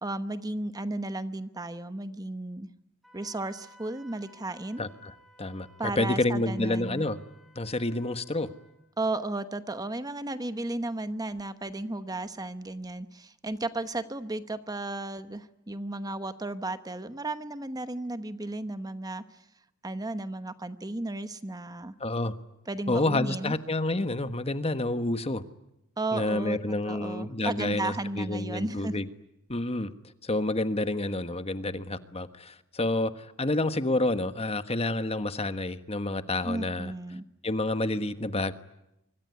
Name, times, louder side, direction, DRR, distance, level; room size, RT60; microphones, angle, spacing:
voice 1, 0.0-2.7 3.1-4.8 5.8-7.0 9.0-19.4 19.8-21.9 22.7-23.5 26.0-29.0 36.4-37.2, right 2 dB, 15° right, 11 dB, 1.0 m, -34 dB
Wind instrument woodwind instrument, 3.0-8.8, equal, ahead, 6.4 m, -57 dB
voice 2, 4.8-5.7 6.0-7.2 7.5-8.5 22.0-22.3 22.9-25.4 26.1-29.1 29.5-29.9 30.2-36.9 37.4-38.5, left 2 dB, 30° left, 11 dB, 1.4 m, -29 dB
25.5 x 24.0 x 9.6 m, 0.83 s
head